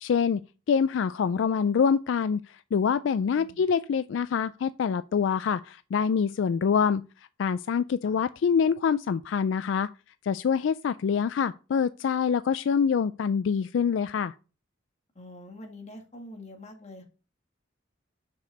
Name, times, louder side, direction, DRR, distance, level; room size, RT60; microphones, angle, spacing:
voice 1, 0.0-7.0 7.4-9.9 10.2-14.3, left 6 dB, 70° left, 0.3 m, -25 dB
voice 2, 3.3-3.6 8.0-8.2 15.1-17.0, left 1 dB, 35° left, 1.7 m, -45 dB
6.6 x 5.1 x 6.6 m
head